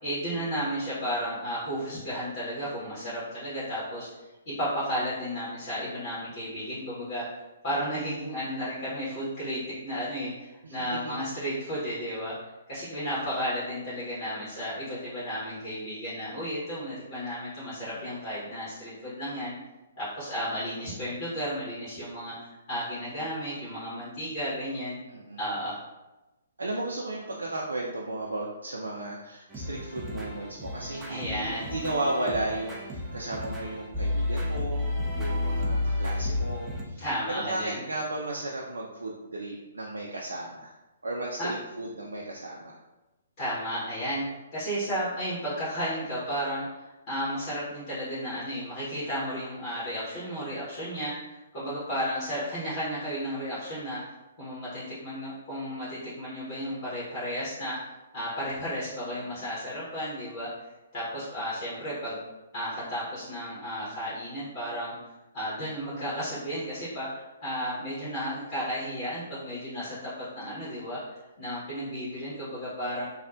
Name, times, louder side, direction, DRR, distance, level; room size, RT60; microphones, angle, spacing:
voice 1, 0.0-4.1 4.4-7.4 7.6-12.3 12.7-19.6 20.0-25.0 25.4-25.8 31.1-31.7 37.0-37.8 41.4-41.5 43.4-44.2 44.5-46.6 47.1-54.0 54.4-57.8 58.1-60.5 60.9-62.2 62.5-64.9 65.3-71.0 71.4-73.1, equal, 45° left, -11 dB, 1.1 m, -33 dB
voice 2, 10.6-11.1 17.8-18.1 25.1-25.4 26.6-40.7 41.0-42.8 59.2-59.3, right 2 dB, 75° right, -3 dB, 0.3 m, -34 dB
sound 1, 29.5-36.8, left 2 dB, 10° right, 0.4 m, -31 dB
2.7 x 2.1 x 2.5 m, 1.0 s
figure-of-eight pair, 125°, 0 cm